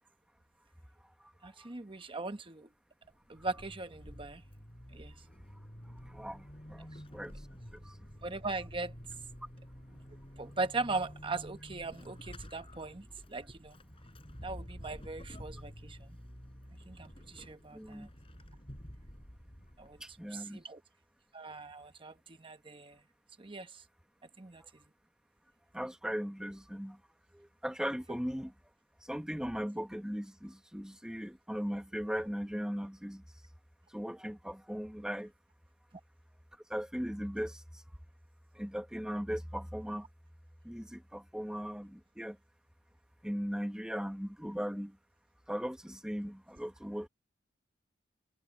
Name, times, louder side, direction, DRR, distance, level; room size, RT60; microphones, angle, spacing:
voice 1, 1.4-2.7 3.3-4.4 4.9-5.1 8.2-8.9 10.4-13.8 14.4-16.2 16.9-18.1 19.8-20.0 20.3-20.8 21.3-23.0 23.4-23.7 24.4-24.6, right 3 dB, 30° right, 1.0 m, -39 dB
Vehicle / Accelerating revving vroom / Squeak, 3.0-20.3, equal, 30° left, 6.5 m, -50 dB
voice 2, 5.8-7.4 7.7-8.0 17.7-18.1 20.0-20.6 24.6-24.7 25.7-27.0 27.3-28.5 29.0-33.2 33.9-35.3 36.7-37.8 38.5-40.1 40.6-42.4 43.2-45.0 45.5-47.1, equal, 5° right, 1.2 m, -38 dB
head